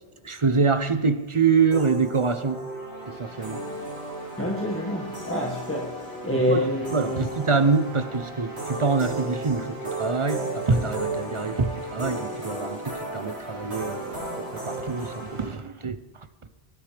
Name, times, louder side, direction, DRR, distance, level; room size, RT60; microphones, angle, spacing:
voice 1, 0.2-2.6 3.1-3.6 6.3-16.0 16.4-16.5, right 4 dB, 35° right, 0.6 m, -25 dB
sound 1, 1.7-15.4, right 2 dB, 85° right, 4.5 m, -34 dB
voice 2, 4.4-7.3, left 1 dB, 10° left, 1.7 m, -27 dB
20.5 x 9.4 x 3.4 m
omnidirectional pair, 1.1 m